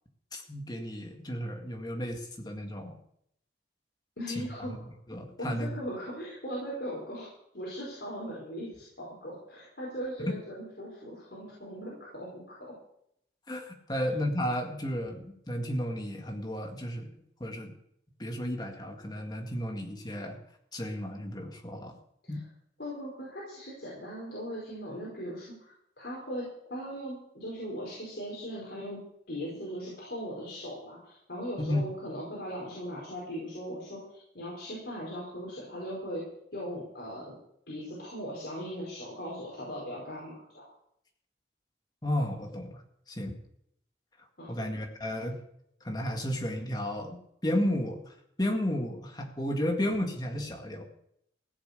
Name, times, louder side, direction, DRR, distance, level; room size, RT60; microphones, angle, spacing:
voice 1, 0.3-3.0 4.3-4.5 5.1-5.7 10.2-10.3 13.5-17.1 17.4-17.7 18.2-20.4 20.7-22.0 22.3-22.4 31.6-31.8 42.0-42.8 43.1-43.3 44.5-45.4 45.8-50.8, left 1 dB, 25° left, 3 dB, 1.9 m, -33 dB
voice 2, 4.2-4.8 5.4-12.6 14.0-14.1 22.2-22.4 22.8-29.0 29.3-36.2 36.5-37.4 37.7-40.7 44.4-44.5, equal, 70° left, -5 dB, 5.0 m, -39 dB
16.0 x 7.1 x 8.2 m, 0.73 s
head